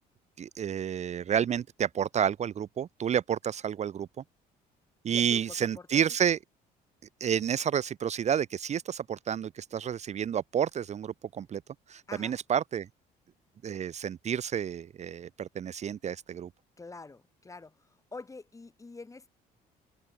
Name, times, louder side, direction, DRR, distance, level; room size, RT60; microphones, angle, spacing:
voice 1, 0.4-4.1 5.0-6.4 7.2-11.6 11.9-12.9 13.6-16.5, right 8 dB, 40° right, 0.9 m, -30 dB
voice 2, 5.1-5.4 5.8-5.9 12.1-12.3 16.8-17.8 18.1-19.3, left 3 dB, 20° left, 5.0 m, -45 dB
cardioid pair, 110°, 17 cm